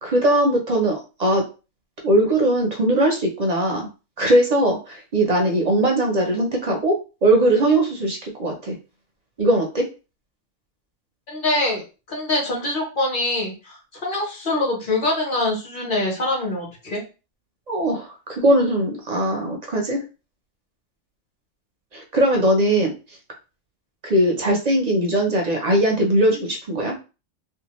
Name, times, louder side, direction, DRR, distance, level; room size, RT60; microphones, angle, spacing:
voice 1, 0.0-1.4 2.0-3.9 4.2-8.7 9.4-9.9 17.7-20.0 21.9-23.0 24.0-27.0, right 1 dB, 50° right, 1 dB, 0.5 m, -20 dB
voice 2, 11.3-11.8 12.1-17.0, left 2 dB, 45° left, -2 dB, 1.2 m, -24 dB
2.7 x 2.3 x 2.9 m, 0.32 s
omnidirectional pair, 1.3 m